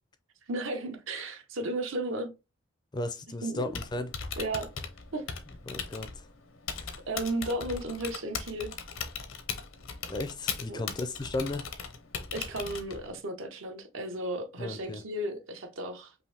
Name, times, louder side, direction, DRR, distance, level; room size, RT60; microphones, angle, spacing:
voice 1, 0.5-2.3 3.4-3.6 4.4-4.7 5.1-5.2 7.1-8.7 10.7-10.8 12.3-16.1, right 1 dB, 75° right, 1.0 m, -34 dB
voice 2, 2.9-4.1 5.7-6.3 6.8-6.9 10.1-11.7 14.6-15.0, left 2 dB, 20° left, 0.4 m, -35 dB
Typing, 3.6-13.2, left 6 dB, 75° left, 0.8 m, -39 dB
5.4 x 2.6 x 3.4 m
head